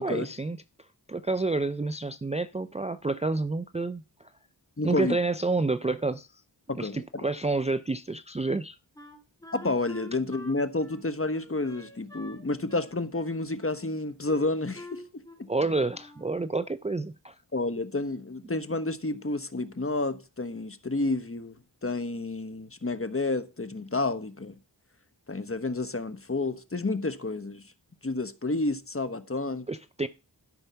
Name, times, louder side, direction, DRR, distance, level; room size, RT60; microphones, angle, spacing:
voice 1, 0.0-0.6 1.1-4.0 4.8-6.3 6.7-8.8 15.5-17.3 29.7-30.1, right 3 dB, 15° right, 0.4 m, -29 dB
voice 2, 4.8-5.2 6.7-7.2 9.5-15.0 15.4-15.5 17.5-21.5 21.8-24.5 25.3-27.6 28.0-29.7, left 2 dB, 30° left, 1.2 m, -30 dB
Wind instrument woodwind instrument, 9.0-12.4 12.7-13.8 14.3-15.6 15.9-16.3, left 2 dB, 10° left, 3.7 m, -47 dB
12.5 x 5.4 x 5.7 m
wide cardioid pair, 45°, 44 cm